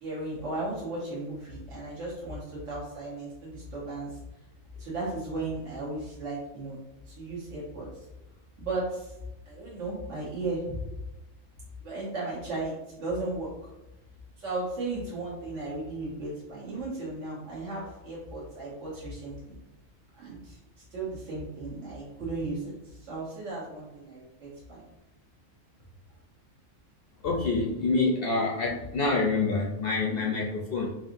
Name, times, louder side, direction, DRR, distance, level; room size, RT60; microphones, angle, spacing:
voice 1, 0.0-4.1 4.8-6.8 7.1-7.9 8.6-9.1 9.5-10.7 11.8-13.5 14.4-19.6 20.2-20.6 20.9-24.8, right 2 dB, 70° right, -7 dB, 1.4 m, -35 dB
voice 2, 27.2-30.9, left 3 dB, 65° left, -2 dB, 0.6 m, -27 dB
4.6 x 2.9 x 2.5 m, 1.0 s
omnidirectional pair, 1.4 m